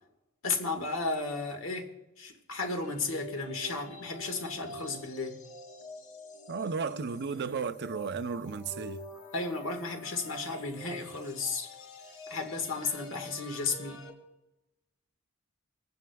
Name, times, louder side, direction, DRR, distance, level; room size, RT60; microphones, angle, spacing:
voice 1, 0.4-5.4 9.3-11.7 12.3-14.0, left 3 dB, 65° left, 1.7 m, -34 dB
sound 1, 2.8-14.1, equal, 85° left, 3.0 m, -46 dB
voice 2, 6.5-9.1, right 5 dB, 55° right, 0.6 m, -34 dB
26.5 x 9.3 x 2.3 m
head